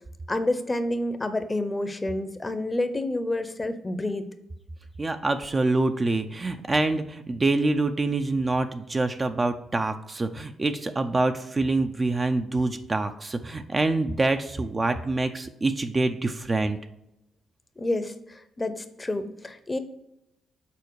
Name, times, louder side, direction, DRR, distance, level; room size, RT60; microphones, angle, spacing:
voice 1, 0.3-4.3 17.8-19.8, left 1 dB, 20° left, 10 dB, 0.7 m, -29 dB
voice 2, 5.0-16.8, right 2 dB, 25° right, 7 dB, 0.5 m, -26 dB
7.0 x 4.3 x 4.7 m, 0.84 s
cardioid pair, 90°, 0 cm